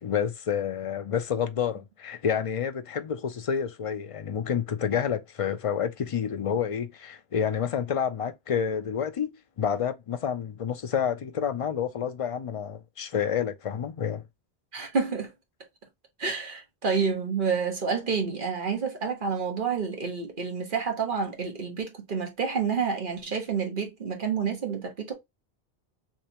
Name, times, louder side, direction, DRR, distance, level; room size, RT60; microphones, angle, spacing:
voice 1, 0.0-14.2, left 8 dB, 60° left, 0.3 m, -29 dB
voice 2, 14.7-15.3 16.2-25.1, right 5 dB, 55° right, 1.3 m, -29 dB
3.6 x 3.1 x 2.8 m
omnidirectional pair, 1.1 m